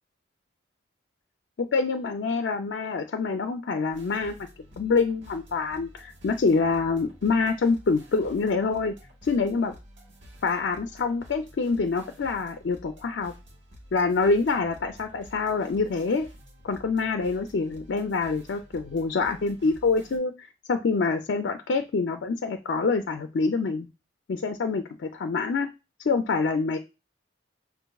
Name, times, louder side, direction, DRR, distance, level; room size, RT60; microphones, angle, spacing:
voice 1, 1.6-4.5 4.8-8.9 9.2-9.7 10.4-13.3 13.9-16.3 16.6-20.3 20.7-23.9 24.3-25.7 26.1-26.8, left 4 dB, 65° left, 5 dB, 0.4 m, -26 dB
sound 1, 3.9-20.2, equal, 70° right, 1.1 m, -50 dB
6.3 x 2.5 x 2.3 m, 0.29 s
head